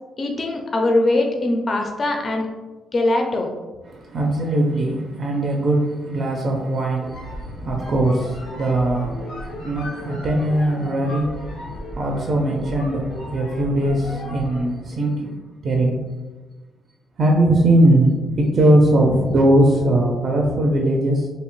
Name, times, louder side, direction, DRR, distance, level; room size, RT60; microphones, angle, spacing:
voice 1, 0.2-2.5 2.9-3.5, left 2 dB, 40° left, 1 dB, 0.4 m, -21 dB
voice 2, 3.9-16.0 17.2-21.3, right 1 dB, 45° right, 0 dB, 0.4 m, -20 dB
sound 1, 6.9-14.7, equal, 85° left, 0.7 m, -35 dB
2.7 x 2.1 x 2.9 m, 1.2 s
cardioid pair, 90°, 0 cm